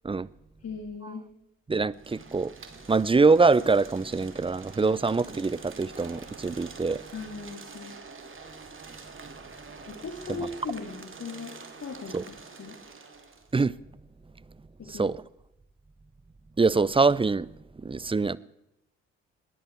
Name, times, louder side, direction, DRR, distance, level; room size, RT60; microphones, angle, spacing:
voice 1, 0.6-1.3 7.1-8.0 9.9-12.8 14.8-15.1, left 4 dB, 45° left, 2.8 m, -39 dB
voice 2, 1.7-2.5 2.9-7.0 10.4-10.5 12.1-12.2 13.5-13.7 14.9-15.2 16.6-17.5 17.8-18.4, right 4 dB, 15° right, 0.6 m, -24 dB
sound 1, 1.9-13.5, right 4 dB, 35° right, 2.8 m, -46 dB
20.5 x 15.0 x 4.6 m
hypercardioid pair, 45°, 36 cm